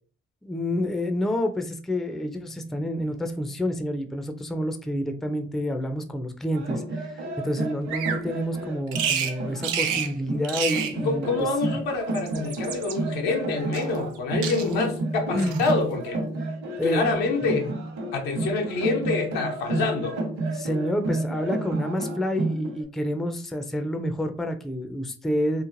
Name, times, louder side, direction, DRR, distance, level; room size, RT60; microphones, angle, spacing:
voice 1, 0.4-6.8 7.1-11.5 14.6-14.8 15.3-15.6 16.8-17.0 17.4-17.7 20.5-25.6, equal, ahead, 0.4 m, -28 dB
sound 1, 6.5-22.8, right 2 dB, 60° right, 1.0 m, -31 dB
Bird vocalization bird call bird song, 7.9-8.2 8.9-9.3 9.6-10.1 10.4-11.0 12.0-13.0 13.7-14.2 14.4-14.9 15.4-15.8, right 8 dB, 80° right, 0.5 m, -29 dB
voice 2, 11.0-16.2 16.8-17.7 18.1-20.2, left 3 dB, 80° left, 0.7 m, -27 dB
3.1 x 2.1 x 2.5 m
hypercardioid pair, 50°, 32 cm